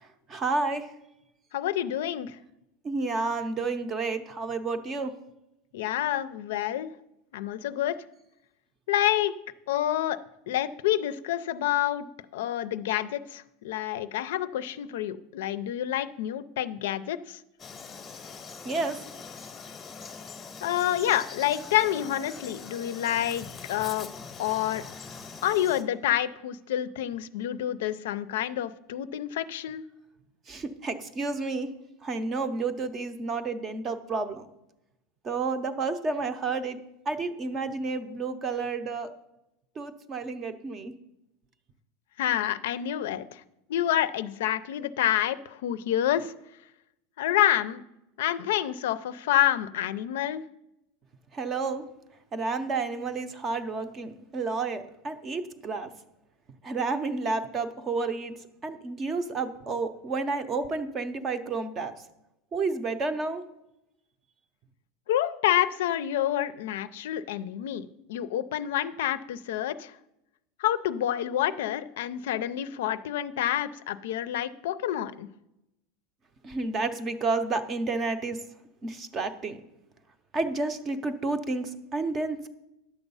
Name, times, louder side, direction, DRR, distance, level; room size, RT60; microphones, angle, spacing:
voice 1, 0.3-0.9 2.8-5.1 18.6-19.0 30.5-31.7 32.0-34.5 35.2-36.8 37.1-39.1 39.8-40.9 51.3-51.9 52.3-55.9 56.6-58.3 58.6-61.9 62.5-63.4 76.4-78.4 78.8-79.6 80.3-82.5, right 3 dB, 20° right, 10 dB, 0.6 m, -30 dB
voice 2, 1.5-2.4 5.7-6.9 7.3-7.9 8.9-9.3 9.7-10.2 10.5-12.1 12.3-17.4 20.6-24.1 24.4-24.8 25.4-29.8 42.2-43.4 43.7-46.3 47.2-47.8 48.2-50.4 65.1-69.9 70.6-75.3, left 12 dB, 75° left, 14 dB, 0.5 m, -28 dB
Frog, 17.6-25.8, left 5 dB, 15° left, 0.8 m, -43 dB
10.0 x 7.1 x 5.5 m, 0.88 s
supercardioid pair, 180°, 0 cm